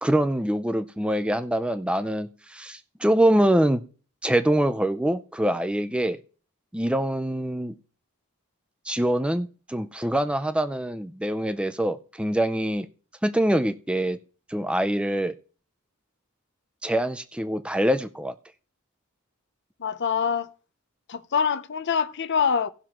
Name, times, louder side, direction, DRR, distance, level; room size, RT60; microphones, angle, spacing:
voice 1, 0.0-3.8 4.2-6.2 6.7-7.7 8.9-12.9 13.2-14.2 14.5-15.3 16.8-18.3, right 1 dB, 5° right, 0.4 m, -24 dB
voice 2, 19.8-20.5 21.1-22.7, left 6 dB, 50° left, 0.6 m, -25 dB
18.0 x 6.1 x 3.0 m
head